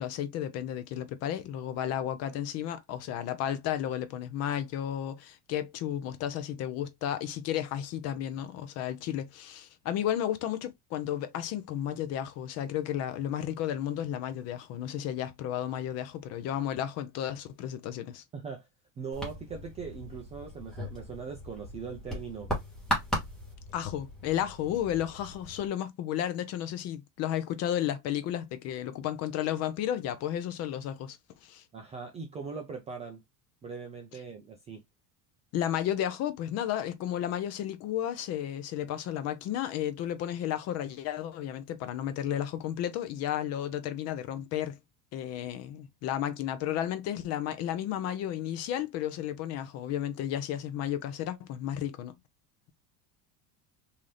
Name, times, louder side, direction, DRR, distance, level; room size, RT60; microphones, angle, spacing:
voice 1, 0.0-18.2 23.7-31.6 35.5-44.8 45.1-52.1, left 11 dB, 40° left, 0.5 m, -33 dB
voice 2, 18.3-18.7 19.0-22.5 31.7-33.2 33.6-34.8, right 5 dB, 20° right, 0.3 m, -40 dB
sound 1, 19.1-25.7, equal, ahead, 1.2 m, -37 dB
3.7 x 2.8 x 3.1 m
cardioid pair, 170°, 42 cm